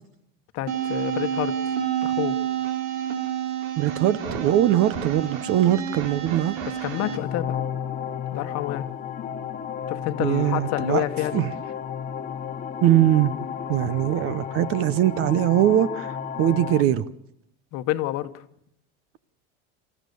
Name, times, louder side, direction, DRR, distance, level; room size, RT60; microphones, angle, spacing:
voice 1, 0.5-1.7 2.0-2.4 6.8-7.6 8.3-8.9 9.9-11.4 17.7-18.4, left 14 dB, 45° left, 1.3 m, -28 dB
sound 1, 0.7-7.2, right 9 dB, 75° right, 3.5 m, -29 dB
voice 2, 3.8-6.6 10.2-11.0 11.3-11.5 12.8-13.3 13.7-16.1 16.4-17.1, right 12 dB, 40° right, 0.8 m, -21 dB
sound 2, 6.8-16.8, left 8 dB, 25° left, 1.1 m, -33 dB
28.5 x 15.0 x 7.0 m
supercardioid pair, 155°, 35 cm